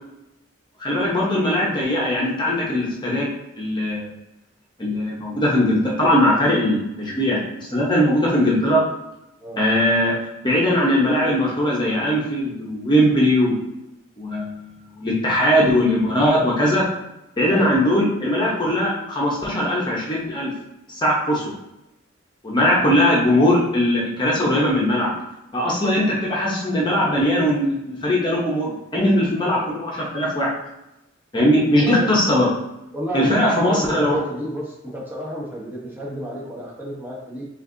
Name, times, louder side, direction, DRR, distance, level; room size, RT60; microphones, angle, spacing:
voice 1, 0.8-3.3 3.6-4.1 4.8-8.8 9.6-10.1 10.4-13.6 14.2-14.7 15.0-16.8 17.4-20.5 20.9-21.4 22.4-25.1 25.5-30.5 31.3-32.5 33.1-34.2, left 1 dB, 25° left, -4 dB, 0.9 m, -20 dB
voice 2, 17.4-17.8 31.7-32.1 32.9-37.4, right 1 dB, 10° right, -5 dB, 0.9 m, -30 dB
6.4 x 2.5 x 2.6 m, 0.91 s
head